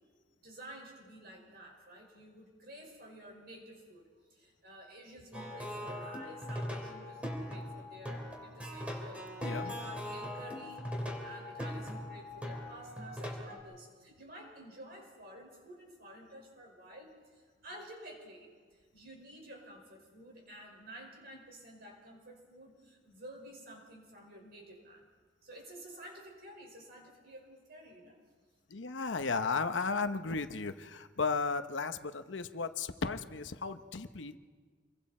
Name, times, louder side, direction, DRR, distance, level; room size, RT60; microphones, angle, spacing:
voice 1, 0.4-4.0 4.3-9.3 9.6-25.1 25.4-28.2, right 1 dB, 55° right, 1 dB, 5.5 m, -51 dB
Plucked string instrument, 5.3-13.6, left 1 dB, 5° right, 3.4 m, -40 dB
voice 2, 9.4-9.7 28.7-34.4, left 4 dB, 75° left, 9 dB, 0.9 m, -35 dB
27.0 x 23.0 x 4.4 m, 1.5 s
head